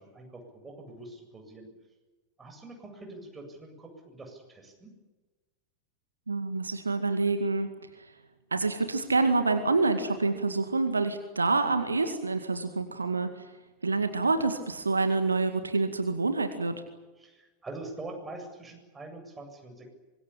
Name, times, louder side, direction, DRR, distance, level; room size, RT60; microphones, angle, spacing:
voice 1, 0.0-1.7 2.4-4.9 17.2-19.9, right 2 dB, 15° right, 3 dB, 7.9 m, -44 dB
voice 2, 6.3-7.7 8.5-13.5 13.8-16.8, right 3 dB, 80° right, 8 dB, 2.1 m, -27 dB
25.0 x 21.5 x 8.7 m, 1.2 s
figure-of-eight pair, 90°, 0 cm